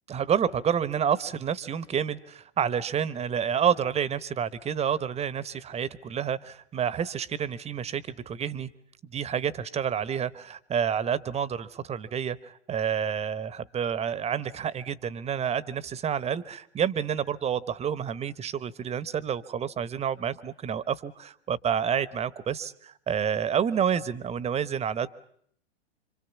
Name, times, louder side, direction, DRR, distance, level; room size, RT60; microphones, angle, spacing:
voice 1, 0.1-8.7 9.1-25.1, right 8 dB, 20° right, 18 dB, 1.0 m, -29 dB
27.5 x 26.0 x 7.2 m, 0.65 s
hypercardioid pair, 105°, 34 cm